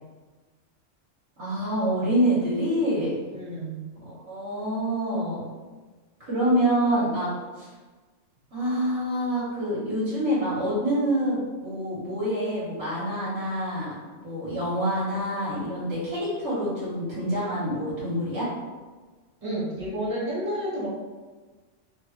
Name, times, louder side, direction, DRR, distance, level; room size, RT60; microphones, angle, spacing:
voice 1, 1.4-3.1 4.0-5.4 6.2-7.3 7.6-7.7 8.5-13.9 14.2-18.5, equal, 70° right, -8 dB, 1.3 m, -26 dB
voice 2, 3.3-3.8 19.4-20.9, right 1 dB, 30° right, -8 dB, 0.9 m, -30 dB
3.4 x 2.3 x 2.9 m, 1.3 s
omnidirectional pair, 1.3 m